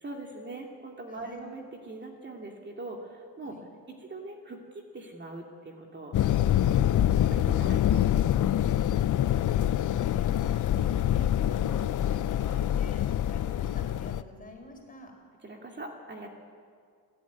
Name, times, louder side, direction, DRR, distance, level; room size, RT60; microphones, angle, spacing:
voice 1, 0.0-3.6 3.9-6.1 6.6-6.8 7.2-8.3 8.5-9.2 15.4-16.3, right 2 dB, 25° right, 1 dB, 2.6 m, -42 dB
voice 2, 1.1-1.4 3.4-3.7 9.8-15.1, left 1 dB, 20° left, 3 dB, 4.6 m, -48 dB
sound 1, 6.1-14.2, left 11 dB, 50° left, 0.7 m, -25 dB
28.5 x 13.5 x 9.4 m, 2.1 s
cardioid pair, 135°, 40 cm